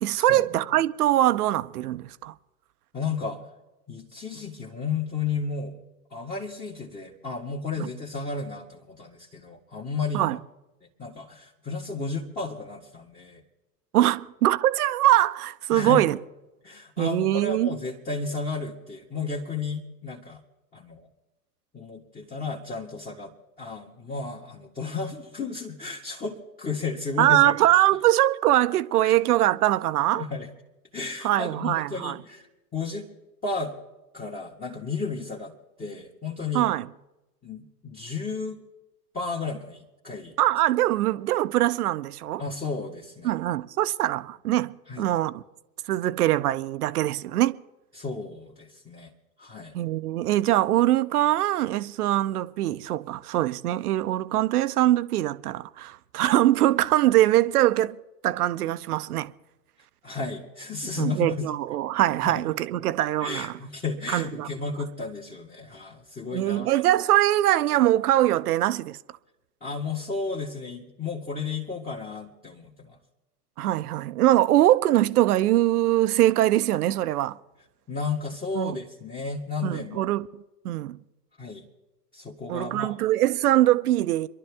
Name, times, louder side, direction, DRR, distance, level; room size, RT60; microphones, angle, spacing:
voice 1, 0.0-2.3 7.8-7.9 10.1-10.4 13.9-16.2 17.0-17.7 27.2-30.2 31.2-32.2 36.5-36.9 40.4-42.4 43.2-45.4 45.9-47.6 49.7-58.0 58.2-59.3 61.0-63.5 64.1-64.5 66.3-69.0 73.6-77.4 78.5-78.8 79.6-81.0 82.5-84.3, right 14 dB, 65° right, 0.8 m, -22 dB
voice 2, 2.9-3.4 3.9-5.8 6.1-10.4 11.0-13.4 15.7-16.1 16.6-20.4 20.7-21.1 21.7-23.3 23.6-27.6 29.0-29.2 30.1-30.5 30.9-33.1 33.4-33.7 34.1-35.5 35.8-36.7 37.4-38.6 39.1-40.4 42.4-43.3 44.9-45.1 48.0-49.1 49.4-49.7 60.0-61.4 62.2-62.4 63.2-66.7 69.6-73.0 77.9-80.1 81.4-81.7 82.1-82.9, left 4 dB, 15° left, 1.8 m, -33 dB
26.5 x 11.5 x 3.6 m
figure-of-eight pair, 90°, 49 cm